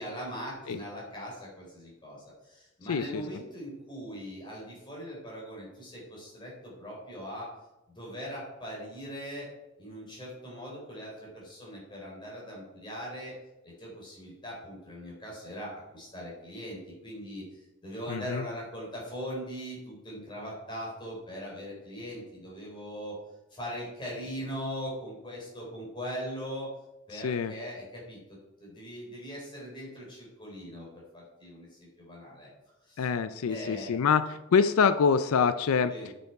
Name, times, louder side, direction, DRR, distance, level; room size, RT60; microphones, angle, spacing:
voice 1, 0.0-7.5 7.9-9.5 9.8-13.4 13.6-23.2 23.5-26.7 27.1-28.2 28.6-32.5 32.8-33.1 33.5-34.0 35.9-36.1, equal, 20° left, -4 dB, 4.0 m, -40 dB
voice 2, 2.9-3.2 18.1-18.4 27.1-27.5 33.0-35.9, left 6 dB, 85° left, 12 dB, 0.4 m, -25 dB
9.6 x 7.0 x 4.6 m, 0.97 s
head